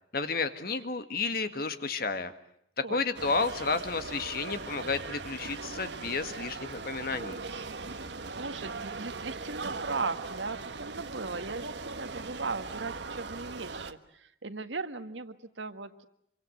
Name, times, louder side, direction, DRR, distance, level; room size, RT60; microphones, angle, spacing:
voice 1, 0.1-2.3 2.8-7.4, left 4 dB, 55° left, 9 dB, 1.9 m, -31 dB
sound 1, 3.1-13.9, right 4 dB, 70° right, 1.4 m, -39 dB
voice 2, 8.3-16.0, right 3 dB, 85° right, 10 dB, 1.7 m, -38 dB
26.0 x 25.0 x 7.8 m, 0.74 s
head